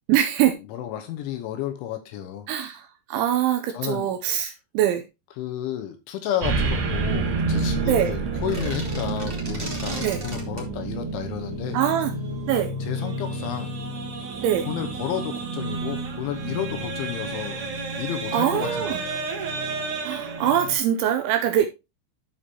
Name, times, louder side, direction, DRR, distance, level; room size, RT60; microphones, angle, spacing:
voice 1, 0.1-0.6 2.5-5.0 7.9-8.1 10.0-10.2 11.7-12.1 12.5-12.7 14.4-14.7 18.3-19.0 20.0-21.7, right 10 dB, 80° right, 2.8 m, -23 dB
voice 2, 0.7-2.5 3.7-4.5 5.4-11.8 12.8-13.8 14.7-17.6 18.0-19.3, left 11 dB, 75° left, 3.1 m, -32 dB
sound 1, 6.4-20.8, right 3 dB, 60° right, 2.2 m, -29 dB
sound 2, 8.3-10.7, right 2 dB, 35° right, 0.8 m, -36 dB
12.5 x 5.1 x 2.9 m
omnidirectional pair, 5.9 m